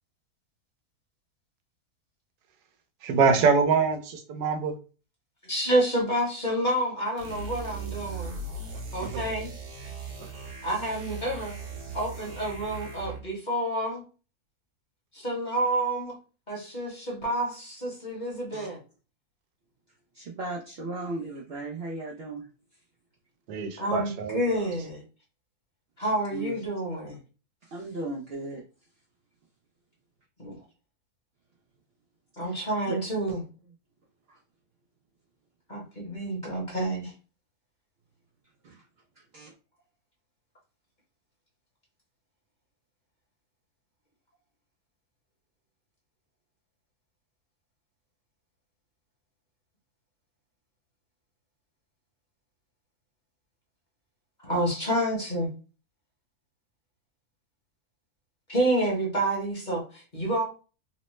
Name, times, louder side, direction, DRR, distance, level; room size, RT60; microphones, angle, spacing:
voice 1, 3.0-4.7 9.0-9.2 23.5-24.4, right 5 dB, 90° right, 6 dB, 1.2 m, -24 dB
voice 2, 5.4-8.4 8.9-9.5 10.6-11.5 11.9-14.0 15.1-16.1 16.5-18.8 23.8-25.0 26.0-27.2 30.4-30.6 32.4-33.4 35.7-37.1 54.4-55.5 58.5-60.4, right 1 dB, 35° left, -2 dB, 0.9 m, -29 dB
sound 1, 7.2-13.3, right 4 dB, 55° right, 1.0 m, -38 dB
voice 3, 20.1-22.5 26.3-26.7 27.6-28.6 32.4-33.1 34.3-34.4 38.6-38.8 39.2-39.5, right 2 dB, 75° right, -2 dB, 0.5 m, -37 dB
3.0 x 2.0 x 3.0 m, 0.34 s
omnidirectional pair, 1.7 m